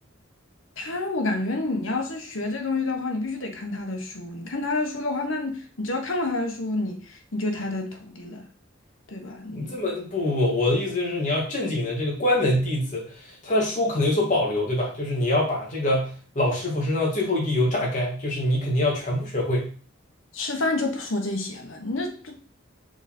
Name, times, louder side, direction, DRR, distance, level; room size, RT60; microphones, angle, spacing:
voice 1, 0.8-8.4 9.1-9.7 20.3-22.4, left 2 dB, 65° left, 1.2 m, -29 dB
voice 2, 9.5-19.7, left 1 dB, 40° left, 2.3 m, -24 dB
5.9 x 4.0 x 4.3 m
head